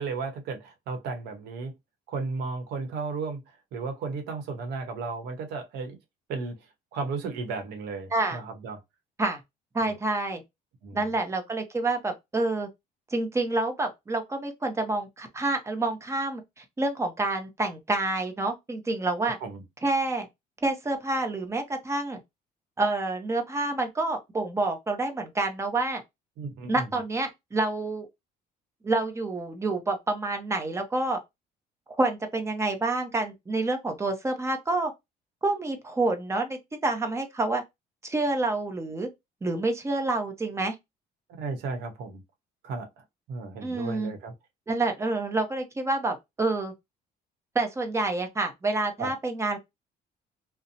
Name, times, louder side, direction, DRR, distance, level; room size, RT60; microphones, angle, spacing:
voice 1, 0.0-1.7 2.1-6.0 6.3-6.6 6.9-8.8 9.8-10.0 10.8-11.2 19.4-19.6 26.4-26.9 41.3-42.2 42.6-44.3 49.0-49.1, right 4 dB, 80° right, 0.9 m, -34 dB
voice 2, 9.7-10.4 10.9-12.7 13.1-19.4 19.8-20.3 20.6-22.2 22.8-26.0 26.7-28.1 28.8-31.2 32.0-34.9 35.4-37.6 38.0-39.1 39.4-40.7 43.6-44.1 44.7-46.7 47.5-49.6, right 2 dB, 15° right, 0.7 m, -28 dB
2.6 x 2.1 x 2.7 m
cardioid pair, 110°, 17 cm